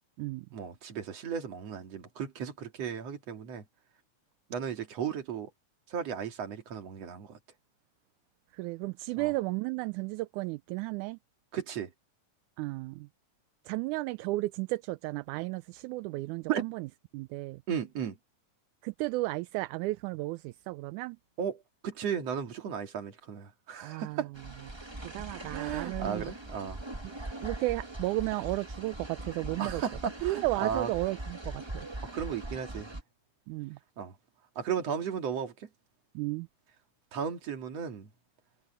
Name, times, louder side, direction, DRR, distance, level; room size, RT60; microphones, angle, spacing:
voice 1, 0.5-3.6 4.5-5.5 5.9-7.4 9.2-9.3 11.5-11.9 16.5-16.7 17.7-18.2 21.4-24.3 25.5-26.8 29.6-30.9 32.0-32.9 34.0-34.1 34.6-35.7 37.1-38.1, right 7 dB, 55° right, 3.3 m, -35 dB
voice 2, 8.5-11.2 12.6-13.1 13.7-16.9 17.1-17.6 18.8-21.2 23.8-24.2 25.0-26.3 27.0-27.1 27.4-29.8 30.2-31.9 33.5-33.8 36.2-36.5, right 20 dB, 80° right, 2.0 m, -34 dB
sound 1, 24.3-33.0, right 1 dB, 25° right, 0.5 m, -41 dB
omnidirectional pair, 3.5 m